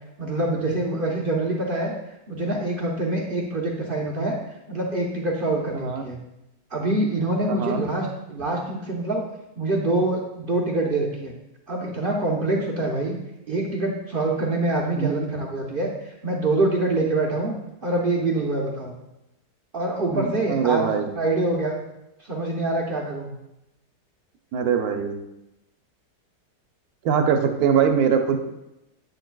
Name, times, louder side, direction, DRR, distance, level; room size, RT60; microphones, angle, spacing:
voice 1, 0.2-1.9 2.3-4.4 4.7-6.2 6.7-9.2 9.6-11.3 11.7-13.2 13.5-17.6 17.8-18.9 19.7-20.9 21.1-21.8 22.2-23.3, right 2 dB, 50° right, -2 dB, 0.6 m, -25 dB
voice 2, 5.7-6.1 7.5-7.8 14.9-15.3 20.1-21.1 24.5-25.2 27.0-28.4, right 7 dB, 65° right, 5 dB, 1.1 m, -22 dB
8.6 x 6.5 x 2.3 m, 0.90 s
omnidirectional pair, 1.9 m